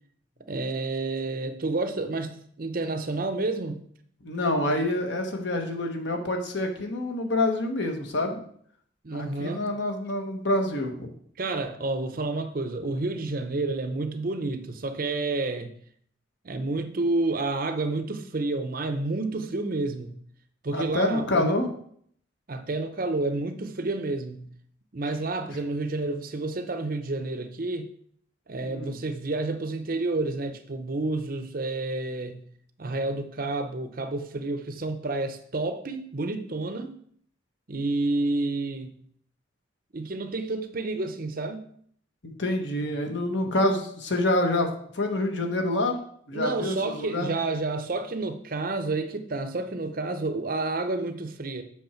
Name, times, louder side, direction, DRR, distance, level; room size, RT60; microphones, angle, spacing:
voice 1, 0.5-3.8 9.0-9.7 11.4-15.7 16.4-20.1 20.6-21.6 22.5-24.5 24.9-27.9 28.5-32.4 32.8-36.9 37.7-38.9 39.9-41.6 46.3-51.6, right 2 dB, 45° right, 0.7 m, -30 dB
voice 2, 4.2-8.4 9.1-11.1 20.7-21.7 28.6-28.9 42.2-46.0 46.3-47.3, left 1 dB, 60° left, 1.3 m, -27 dB
8.0 x 6.1 x 4.4 m
head